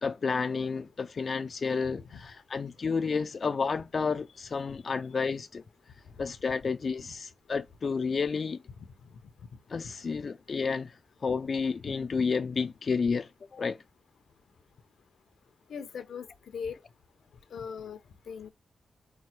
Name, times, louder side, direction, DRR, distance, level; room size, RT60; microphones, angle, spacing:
voice 1, 0.0-5.6 6.2-8.6 9.7-11.0 11.2-13.8, left 5 dB, 50° left, 0.4 m, -31 dB
voice 2, 15.7-16.3 16.5-16.8 17.5-18.0 18.3-18.5, left 6 dB, 85° left, 0.8 m, -38 dB
4.7 x 2.2 x 4.4 m
cardioid pair, 90°, 0 cm